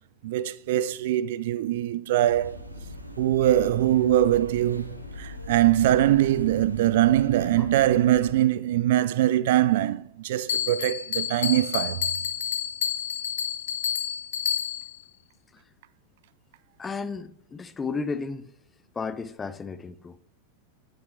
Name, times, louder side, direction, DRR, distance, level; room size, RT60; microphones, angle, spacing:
voice 1, 0.2-2.6 3.2-12.1, right 13 dB, 55° right, 0.3 m, -22 dB
sound 1, 2.2-8.3, left 1 dB, 90° right, 0.9 m, -40 dB
Bell, 10.5-15.0, left 8 dB, 60° left, 0.6 m, -29 dB
voice 2, 16.8-18.5 18.9-20.2, left 4 dB, 15° left, 0.5 m, -33 dB
9.4 x 7.2 x 3.3 m
figure-of-eight pair, 90°, 0 cm